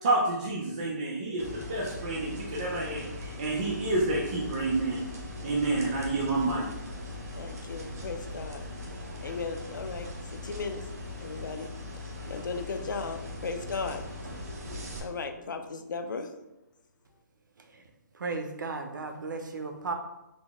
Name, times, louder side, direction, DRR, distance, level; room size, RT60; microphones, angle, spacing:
voice 1, 0.0-5.0 5.4-6.7, right 2 dB, 25° right, -5 dB, 0.4 m, -29 dB
sound 1, 1.4-15.0, left 2 dB, 55° right, 0.8 m, -40 dB
voice 2, 7.3-8.7 9.2-10.1 10.4-10.8 11.2-11.7 12.3-14.0 15.0-16.3, left 4 dB, 90° left, 7 dB, 0.5 m, -36 dB
voice 3, 18.2-19.9, right 4 dB, 85° right, 5 dB, 0.6 m, -34 dB
3.9 x 2.0 x 3.4 m, 0.97 s
hypercardioid pair, 175°, 10 cm